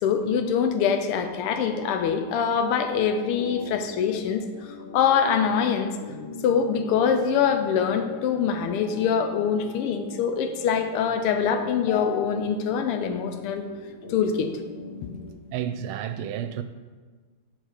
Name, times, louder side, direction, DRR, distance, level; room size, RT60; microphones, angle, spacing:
voice 1, 0.0-4.4 4.9-5.9 6.4-13.6 14.1-14.5, left 7 dB, 85° left, 1.6 m, -24 dB
sound 1, 1.2-15.4, left 2 dB, 35° left, 1.1 m, -42 dB
voice 2, 15.5-16.6, right 10 dB, 75° right, 1.4 m, -31 dB
7.5 x 4.6 x 6.4 m
omnidirectional pair, 2.4 m